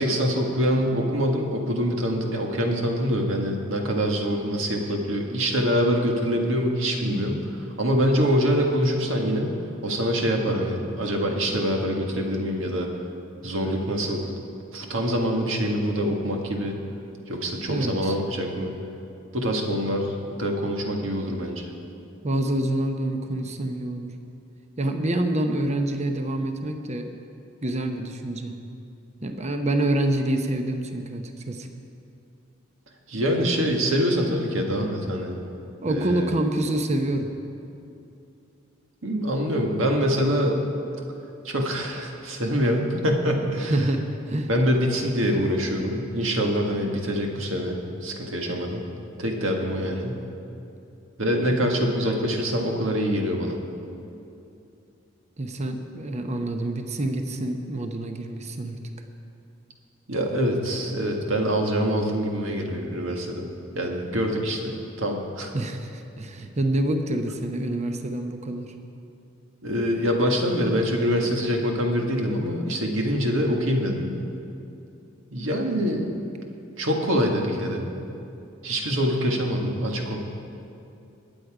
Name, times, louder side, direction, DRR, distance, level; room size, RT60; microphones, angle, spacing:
voice 1, 0.0-7.4 7.8-9.5 9.8-12.9 13.4-14.3 14.7-16.8 17.3-18.7 19.3-21.6 33.1-35.3 35.8-36.3 39.0-40.6 41.4-43.7 44.5-48.8 49.2-50.2 51.2-53.6 60.1-63.5 63.7-65.5 69.6-74.1 75.3-76.1 76.8-77.9 78.6-80.2, equal, 75° right, 1 dB, 1.8 m, -25 dB
voice 2, 17.7-18.2 22.2-24.1 24.8-27.1 27.6-28.5 29.2-31.7 35.8-37.3 43.4-44.5 55.4-58.8 65.5-68.7, right 1 dB, 35° right, 5 dB, 0.8 m, -27 dB
21.5 x 8.1 x 4.9 m, 2.7 s
head